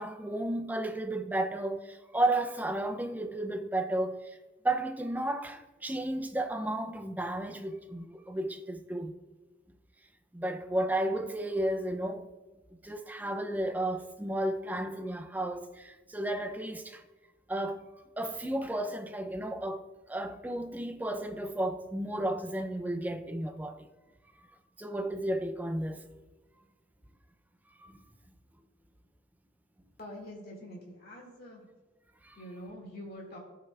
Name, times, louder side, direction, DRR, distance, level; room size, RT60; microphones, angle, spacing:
voice 1, 0.0-4.4 4.6-9.1 10.3-12.3 12.8-17.0 17.5-17.9 18.2-23.9 24.8-26.1 27.9-28.0 32.2-32.4, right 1 dB, 10° right, 0.4 m, -33 dB
voice 2, 30.0-31.7 32.3-33.4, equal, 50° left, 2.1 m, -45 dB
13.5 x 5.6 x 2.3 m
head